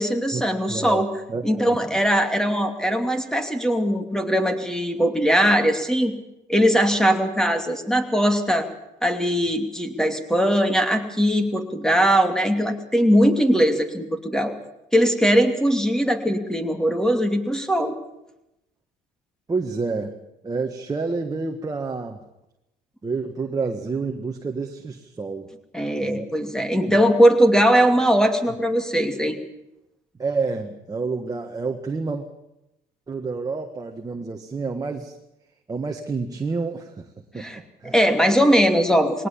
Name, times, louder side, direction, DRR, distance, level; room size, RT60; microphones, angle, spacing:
voice 1, 0.0-1.1 1.4-6.1 6.5-8.7 9.0-14.5 14.9-17.9 25.7-29.4 37.3-37.6 37.8-39.3, equal, 5° left, 7 dB, 2.7 m, -20 dB
voice 2, 0.7-2.0 19.5-20.1 20.4-22.2 23.0-25.5 26.0-26.3 26.9-27.1 30.2-32.3 33.1-35.1 35.7-37.1 37.3-37.9, right 4 dB, 20° right, 3 dB, 1.7 m, -29 dB
20.5 x 18.5 x 7.3 m, 0.89 s
cardioid pair, 110°, 17 cm